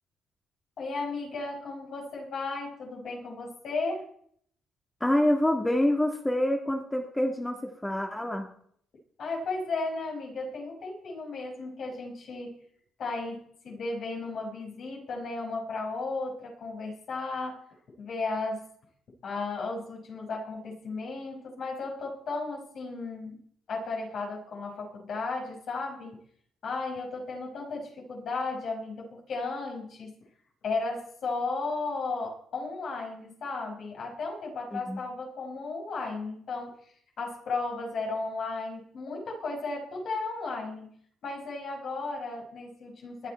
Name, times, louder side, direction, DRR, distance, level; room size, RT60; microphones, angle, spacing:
voice 1, 0.8-4.1 9.2-12.6 13.0-17.6 18.0-18.6 19.2-23.4 23.7-26.2 26.6-30.1 30.6-36.8 37.2-40.9 41.2-43.3, left 3 dB, 60° left, 0 dB, 5.3 m, -34 dB
voice 2, 5.0-8.5 34.7-35.0, left 1 dB, 10° left, 3 dB, 1.8 m, -26 dB
20.5 x 10.0 x 4.4 m, 0.63 s
cardioid pair, 90°, 0 cm